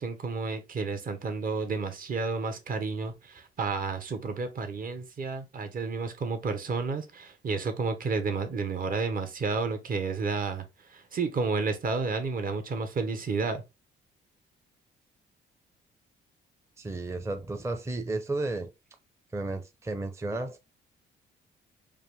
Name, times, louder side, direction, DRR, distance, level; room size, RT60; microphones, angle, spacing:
voice 1, 0.0-13.6, right 4 dB, 45° right, 1.0 m, -31 dB
voice 2, 16.8-18.7 19.3-20.6, right 2 dB, 15° right, 0.6 m, -33 dB
4.9 x 2.6 x 3.4 m
cardioid pair, 90°, 20 cm